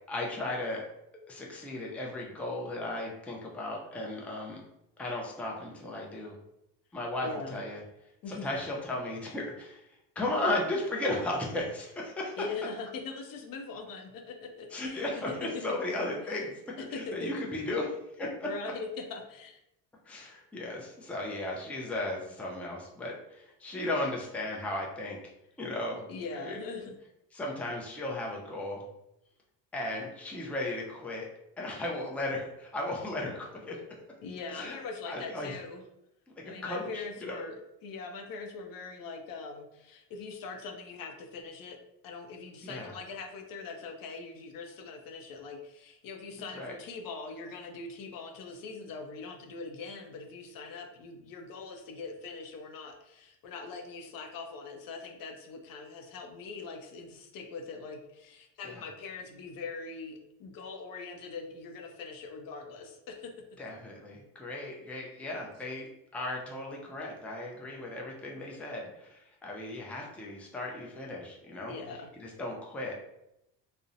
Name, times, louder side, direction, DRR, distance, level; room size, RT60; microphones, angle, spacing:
voice 1, 0.1-0.8 1.3-4.6 5.0-6.4 6.9-7.8 8.3-9.8 10.2-12.4 14.7-16.5 16.9-18.5 20.1-25.2 25.6-26.1 26.3-26.6 27.3-28.8 29.7-31.3 31.6-33.8 34.5-34.8 35.1-35.6 36.4-37.4 42.6-42.9 46.5-46.7 58.6-58.8 63.6-65.9 66.1-71.7 72.2-73.0, left 1 dB, 5° left, -2 dB, 0.4 m, -35 dB
voice 2, 7.2-7.6 8.2-8.5 12.4-16.1 16.8-17.3 18.4-19.6 26.1-27.0 34.2-35.8 36.4-63.3 71.7-72.1, left 4 dB, 60° left, 4 dB, 0.5 m, -42 dB
2.6 x 2.0 x 2.5 m, 0.84 s
supercardioid pair, 85°, 40 cm